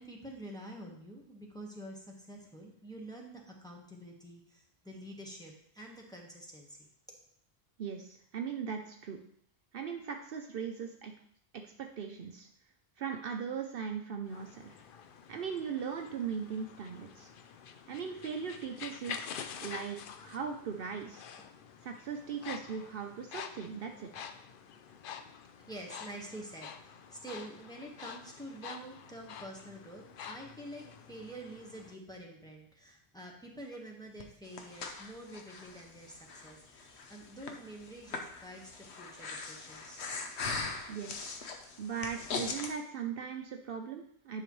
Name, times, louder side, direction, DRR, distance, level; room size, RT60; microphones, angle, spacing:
voice 1, 0.0-6.9 24.9-25.1 25.6-40.0, right 1 dB, 5° left, -1 dB, 1.2 m, -47 dB
voice 2, 7.8-9.2 9.7-11.1 11.6-12.5 13.0-14.8 15.3-17.3 17.9-19.3 19.6-20.0 20.2-21.2 21.8-24.1 40.9-41.4 41.8-44.4, right 6 dB, 65° right, 4 dB, 0.8 m, -39 dB
sound 1, 14.2-31.9, left 7 dB, 60° left, 0.7 m, -48 dB
Breathing, 34.2-42.7, left 4 dB, 80° left, 1.2 m, -41 dB
9.7 x 5.9 x 3.1 m, 0.67 s
omnidirectional pair, 1.1 m